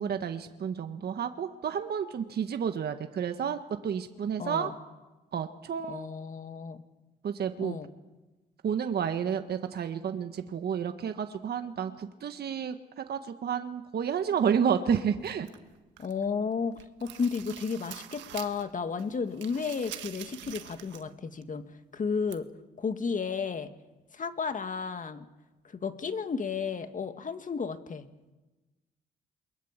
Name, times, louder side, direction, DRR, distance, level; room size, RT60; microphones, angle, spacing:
voice 1, 0.0-4.7 5.3-6.1 7.2-7.8 8.6-15.5, right 7 dB, 60° right, 7 dB, 1.5 m, -31 dB
voice 2, 4.4-4.8 5.9-6.8 7.6-7.9 16.0-16.7 17.0-21.6 21.9-22.5 22.8-23.7 24.1-25.3 25.6-28.1, left 5 dB, 45° left, 8 dB, 2.2 m, -33 dB
sound 1, 15.2-16.3 16.6-18.7 19.0-21.1 21.4-21.5 22.3-22.4, right 12 dB, 85° right, 1.5 m, -45 dB
28.5 x 22.5 x 7.5 m, 1.1 s
supercardioid pair, 65°, 19 cm